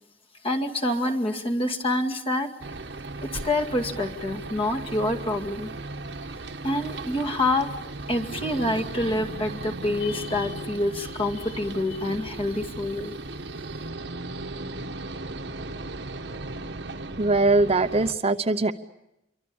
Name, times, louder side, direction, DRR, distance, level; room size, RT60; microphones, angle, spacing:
voice 1, 0.4-2.5 3.2-5.7 6.6-7.7 8.1-13.1, left 1 dB, 30° left, 6 dB, 2.2 m, -27 dB
sound 1, 2.6-18.1, right 2 dB, 75° right, 1.4 m, -36 dB
voice 2, 17.2-18.7, right 2 dB, 35° right, 9 dB, 0.9 m, -21 dB
27.5 x 24.0 x 7.1 m, 0.87 s
head